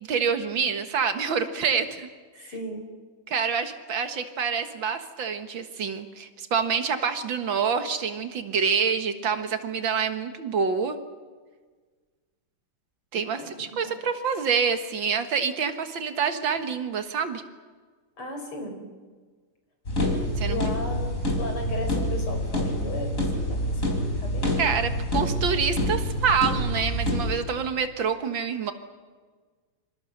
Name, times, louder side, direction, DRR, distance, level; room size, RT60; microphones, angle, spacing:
voice 1, 0.0-2.1 2.4-2.5 3.3-11.0 13.1-17.4 20.4-20.6 24.6-28.7, right 6 dB, 65° right, 8 dB, 2.2 m, -27 dB
voice 2, 2.4-2.9 13.3-13.9 18.2-18.9 20.5-24.6, left 2 dB, 85° left, 4 dB, 5.3 m, -36 dB
sound 1, 19.9-27.4, equal, 35° left, 5.0 m, -27 dB
26.5 x 26.0 x 6.6 m, 1.5 s
omnidirectional pair, 2.4 m